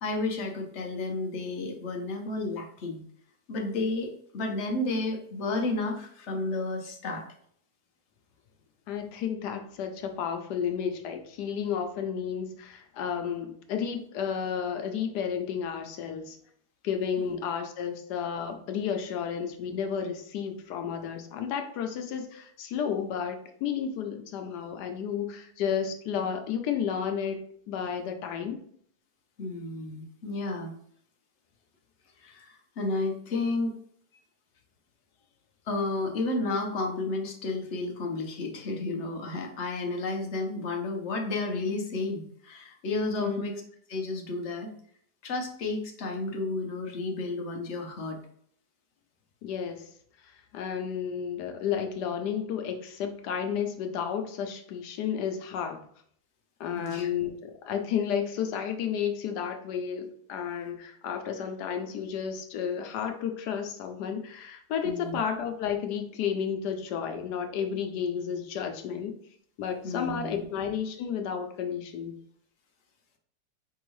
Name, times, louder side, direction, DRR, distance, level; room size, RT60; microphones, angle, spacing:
voice 1, 0.0-3.0 3.5-7.2 17.2-17.3 29.4-30.7 32.2-33.7 35.7-43.6 43.9-44.7 45.2-48.2 56.7-57.1 64.8-65.2 69.8-70.4, left 2 dB, 50° left, 2 dB, 1.0 m, -32 dB
voice 2, 8.9-16.4 16.8-28.6 43.2-43.4 49.4-49.8 50.2-55.8 56.6-69.1 69.6-72.1, left 7 dB, 85° left, 5 dB, 1.2 m, -32 dB
4.6 x 3.5 x 3.1 m, 0.63 s
omnidirectional pair, 1.7 m